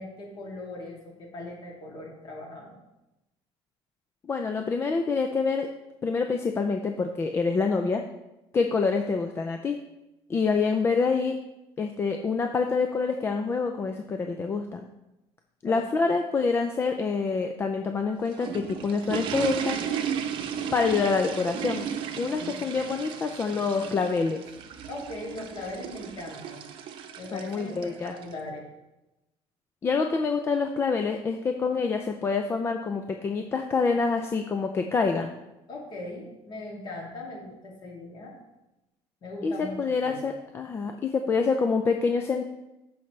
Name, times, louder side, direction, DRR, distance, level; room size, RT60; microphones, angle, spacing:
voice 1, 0.0-2.8 15.6-15.8 24.9-26.7 27.2-27.8 28.0-28.7 35.7-38.3 39.2-39.8 40.0-40.4, left 2 dB, 40° left, -2 dB, 2.5 m, -39 dB
voice 2, 4.3-5.7 6.0-8.0 8.5-9.8 10.3-11.4 11.8-14.8 15.6-19.8 20.7-21.9 22.2-24.4 27.3-28.2 29.8-35.3 39.4-42.4, left 4 dB, 20° left, 5 dB, 0.4 m, -26 dB
sound 1, 18.0-28.3, right 8 dB, 50° right, 0.8 m, -35 dB
14.5 x 5.5 x 3.2 m, 0.96 s
cardioid pair, 170°, 11 cm